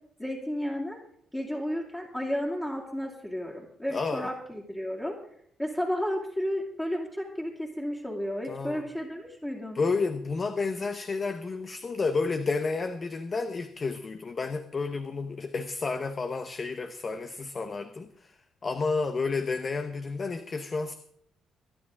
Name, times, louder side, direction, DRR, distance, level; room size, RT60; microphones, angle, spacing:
voice 1, 0.2-1.0 1.3-5.2 5.6-9.8, equal, 10° left, -4 dB, 2.7 m, -32 dB
voice 2, 3.9-4.3 8.5-8.8 9.7-20.9, left 4 dB, 35° left, 10 dB, 0.9 m, -31 dB
23.5 x 9.8 x 3.7 m, 0.69 s
cardioid pair, 90°, 0 cm